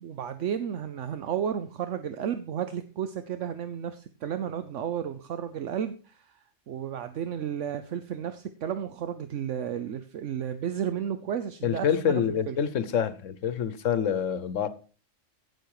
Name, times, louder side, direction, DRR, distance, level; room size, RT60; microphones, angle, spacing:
voice 1, 0.0-6.3 6.7-12.2 12.5-12.6, right 9 dB, 75° right, 1.1 m, -32 dB
voice 2, 11.6-14.7, left 8 dB, 80° left, 1.3 m, -26 dB
16.0 x 6.6 x 4.8 m
omnidirectional pair, 1.3 m